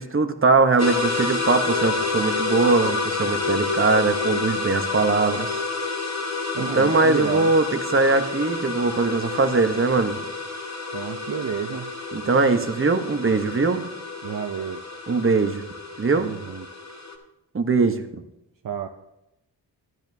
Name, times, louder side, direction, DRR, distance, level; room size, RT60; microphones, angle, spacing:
voice 1, 0.0-5.6 6.6-10.2 12.1-13.8 15.1-15.6 16.0-16.3 17.5-18.2, right 3 dB, 30° right, 7 dB, 1.0 m, -21 dB
sound 1, 0.8-17.1, left 3 dB, 40° left, 1.8 m, -29 dB
voice 2, 6.6-7.5 10.9-11.9 14.2-14.8 16.2-16.7 18.6-18.9, right 8 dB, 50° right, 5 dB, 0.7 m, -30 dB
12.5 x 10.0 x 2.7 m, 0.88 s
cardioid pair, 60°, 43 cm